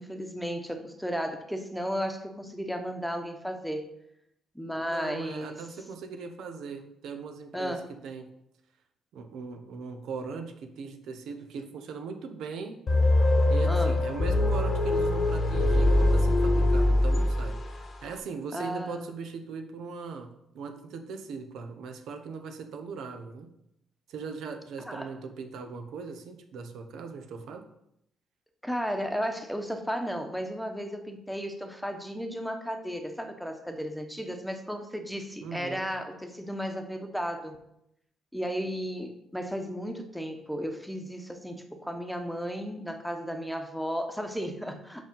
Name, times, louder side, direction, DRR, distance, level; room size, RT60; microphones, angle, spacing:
voice 1, 0.0-3.9 4.5-5.7 7.5-7.9 13.7-14.0 18.5-19.1 24.8-25.1 28.6-37.6 38.3-45.0, equal, ahead, 5 dB, 1.0 m, -34 dB
voice 2, 4.7-8.3 9.1-12.8 13.5-20.3 20.5-23.5 24.1-27.7 35.4-35.9, right 5 dB, 80° right, 6 dB, 0.9 m, -39 dB
sound 1, 12.9-17.9, left 1 dB, 40° left, 1.0 m, -23 dB
5.5 x 5.2 x 5.3 m, 0.78 s
cardioid pair, 90°, 0 cm